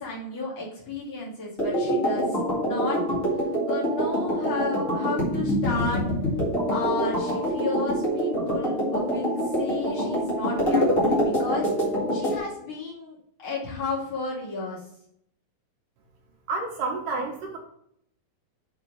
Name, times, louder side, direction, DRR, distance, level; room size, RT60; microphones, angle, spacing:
voice 1, 0.0-2.4 2.6-3.0 3.7-6.0 6.7-11.7 12.1-14.8, left 3 dB, 50° left, -8 dB, 3.2 m, -33 dB
sound 1, 1.6-12.4, equal, 30° left, 1.9 m, -25 dB
voice 2, 16.5-17.6, right 3 dB, 75° right, 1 dB, 2.5 m, -29 dB
6.6 x 4.4 x 5.4 m, 0.72 s
omnidirectional pair, 4.0 m